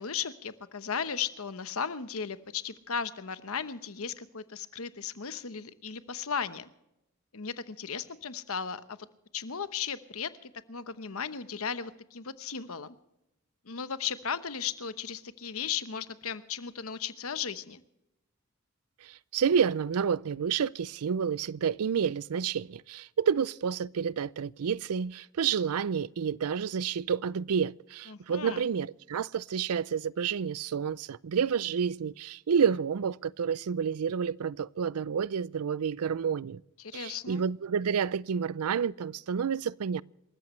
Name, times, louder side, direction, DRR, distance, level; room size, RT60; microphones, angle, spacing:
voice 1, 0.0-6.7 7.3-9.0 9.3-12.9 13.7-17.8 28.1-28.7 36.8-37.4, left 6 dB, 75° left, 1.0 m, -36 dB
voice 2, 19.0-36.6 36.9-40.0, right 7 dB, 85° right, 0.4 m, -29 dB
27.5 x 14.0 x 3.2 m
head